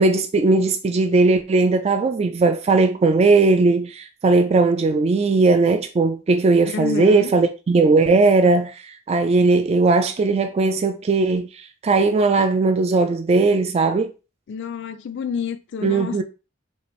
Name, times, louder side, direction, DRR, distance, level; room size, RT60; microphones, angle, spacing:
voice 1, 0.0-14.1 15.8-16.2, right 3 dB, 30° right, 0.3 m, -18 dB
voice 2, 6.6-7.3 14.5-16.2, left 5 dB, 60° left, 0.3 m, -28 dB
4.3 x 2.4 x 3.1 m
head